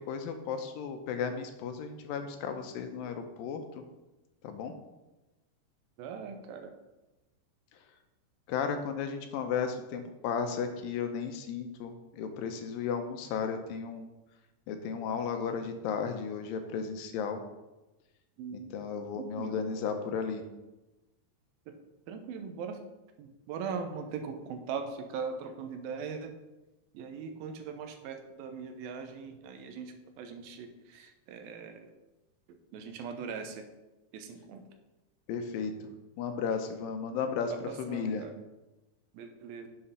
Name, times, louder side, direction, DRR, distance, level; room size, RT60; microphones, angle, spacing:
voice 1, 0.1-3.6 4.4-4.7 8.5-14.1 14.7-17.4 18.5-20.4 35.3-35.7 36.2-37.5 37.8-38.3, left 6 dB, 85° left, 6 dB, 2.5 m, -34 dB
voice 2, 6.0-6.7 18.4-18.7 19.1-19.8 21.7-21.8 22.1-22.9 23.2-26.3 26.9-31.9 32.5-33.7 34.1-34.6 37.5-38.3 39.1-39.7, right 6 dB, 90° right, 6 dB, 2.7 m, -40 dB
7.6 x 5.7 x 5.5 m, 1.0 s
omnidirectional pair, 4.1 m